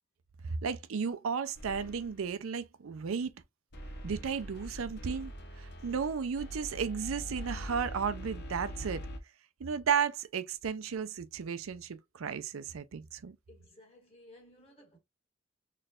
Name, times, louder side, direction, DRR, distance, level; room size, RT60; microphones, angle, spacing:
voice 1, 0.4-3.3 4.0-5.3 5.6-9.0 9.6-13.3, right 6 dB, 90° right, 0.5 m, -34 dB
sound 1, 1.5-2.3 3.7-9.2, equal, 55° left, 0.9 m, -43 dB
voice 2, 13.5-15.0, left 1 dB, 30° left, 1.6 m, -57 dB
4.1 x 3.2 x 2.4 m
head